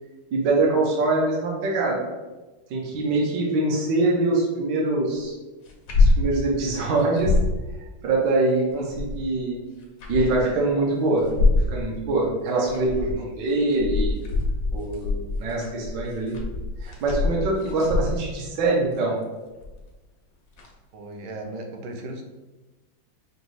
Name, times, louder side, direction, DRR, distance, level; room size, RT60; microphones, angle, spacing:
voice 1, 0.3-2.0 2.7-5.3 6.0-7.3 8.0-9.6 10.1-11.3 11.5-14.2 14.7-16.4 16.8-19.2, right 2 dB, 65° right, -3 dB, 1.2 m, -24 dB
sound 1, 5.7-6.3 6.6-6.7 7.0-7.5 8.7-9.3 9.8-10.5 11.2-11.7 12.5-13.2 13.6-18.3 19.6-19.9 20.6-20.7, left 3 dB, 70° left, 0.8 m, -24 dB
voice 2, 20.9-22.2, right 2 dB, 80° right, 4 dB, 1.4 m, -37 dB
5.2 x 2.3 x 3.1 m, 1.2 s
omnidirectional pair, 2.3 m